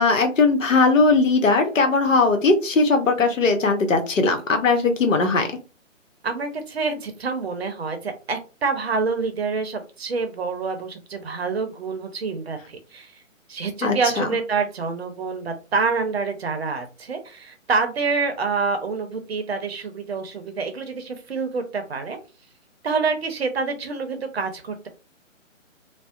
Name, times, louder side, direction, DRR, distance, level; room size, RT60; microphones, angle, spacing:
voice 1, 0.0-5.5 13.8-14.3, left 3 dB, 75° left, 5 dB, 0.8 m, -19 dB
voice 2, 6.2-13.1 13.5-22.2 22.8-24.9, right 4 dB, 50° right, 7 dB, 0.6 m, -27 dB
2.6 x 2.1 x 2.3 m, 0.32 s
figure-of-eight pair, 145°, 39 cm